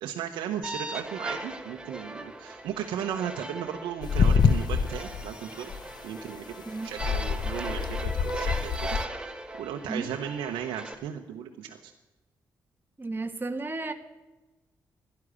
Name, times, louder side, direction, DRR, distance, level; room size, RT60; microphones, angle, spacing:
voice 1, 0.0-5.7 6.0-6.5 6.8-11.9, right 9 dB, 90° right, 3 dB, 0.9 m, -36 dB
sound 1, 0.6-10.9, right 1 dB, 10° right, 1.8 m, -38 dB
sound 2, 4.0-5.3 5.7-5.9 7.0-9.0, left 6 dB, 65° left, 0.8 m, -26 dB
voice 2, 6.7-7.0 9.9-10.1 13.0-13.9, right 3 dB, 25° right, 6 dB, 1.4 m, -33 dB
12.5 x 11.0 x 9.8 m, 1.1 s
supercardioid pair, 50°, 8 cm